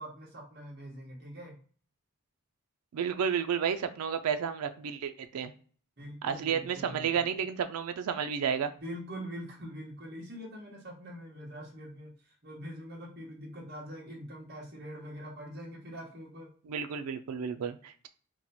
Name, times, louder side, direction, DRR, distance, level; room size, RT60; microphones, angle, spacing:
voice 1, 0.0-1.6 6.0-7.3 8.8-16.5, equal, 45° right, -2 dB, 1.1 m, -44 dB
voice 2, 2.9-5.5 6.2-8.7 16.7-18.1, right 7 dB, 90° right, 9 dB, 0.4 m, -31 dB
2.9 x 2.2 x 4.1 m, 0.43 s
head